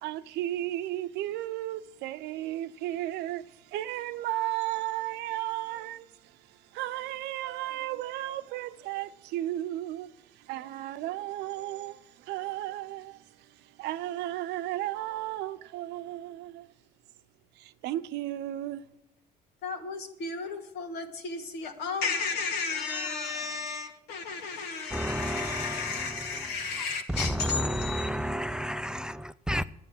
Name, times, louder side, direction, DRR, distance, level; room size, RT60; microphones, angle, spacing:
voice 1, 0.0-16.7 17.6-18.9, right 14 dB, 85° right, 0.7 m, -34 dB
voice 2, 19.6-28.1, left 5 dB, 80° left, 2.1 m, -33 dB
voice 3, 24.9-25.8 27.2-29.6, equal, 5° right, 0.4 m, -31 dB
11.0 x 9.0 x 7.7 m
cardioid pair, 110°, 17 cm